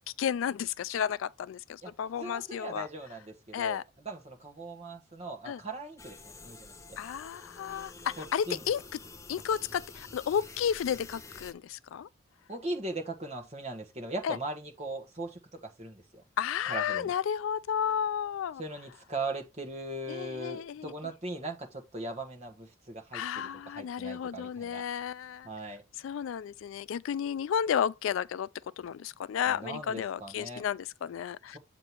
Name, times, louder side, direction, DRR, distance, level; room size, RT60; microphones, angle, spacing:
voice 1, 0.2-2.9 3.5-3.8 5.5-5.6 7.0-8.8 9.3-12.1 14.2-14.4 16.4-18.6 20.1-20.9 23.1-25.5 26.0-28.5 28.8-31.6, left 8 dB, 75° left, 0.3 m, -32 dB
voice 2, 2.2-7.0 8.2-8.6 12.5-16.2 16.7-17.1 18.6-24.8 25.4-25.8 29.4-30.6, right 2 dB, 30° right, 1.3 m, -39 dB
sound 1, 6.0-11.5, left 3 dB, 15° left, 0.5 m, -49 dB
7.6 x 3.1 x 5.5 m
head